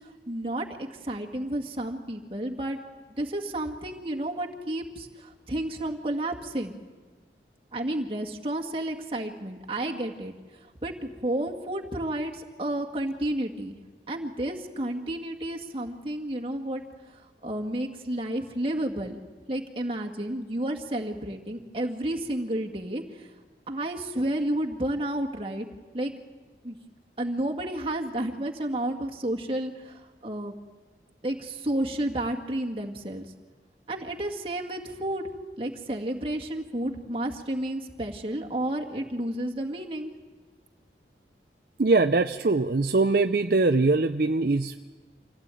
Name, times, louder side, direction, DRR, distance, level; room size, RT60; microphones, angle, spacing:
voice 1, 0.0-2.8 3.2-6.8 7.7-10.3 10.8-13.8 14.1-16.8 17.1-19.2 19.5-23.3 23.7-25.7 25.9-26.1 26.6-26.8 27.2-30.6 31.2-33.3 33.9-35.2 35.6-40.1, right 1 dB, 30° right, 1 dB, 2.0 m, -31 dB
voice 2, 41.8-44.8, right 3 dB, 55° right, 7 dB, 0.6 m, -22 dB
26.0 x 16.5 x 9.1 m, 1.4 s
head